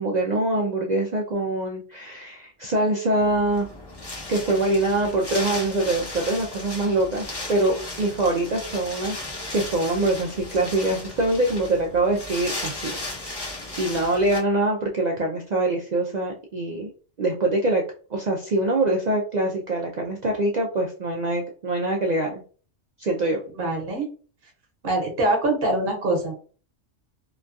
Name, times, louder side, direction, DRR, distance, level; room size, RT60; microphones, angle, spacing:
voice 1, 0.0-3.7 4.3-9.2 9.5-13.5 13.8-16.9 17.2-17.8 18.1-22.4 23.0-23.4, right 2 dB, 70° right, -1 dB, 0.4 m, -24 dB
Wind, 3.2-14.4, left 2 dB, 25° left, 0.7 m, -35 dB
voice 2, 23.5-24.1 24.8-26.3, right 2 dB, 50° right, 2 dB, 1.1 m, -24 dB
2.9 x 2.2 x 2.5 m, 0.39 s
omnidirectional pair, 1.3 m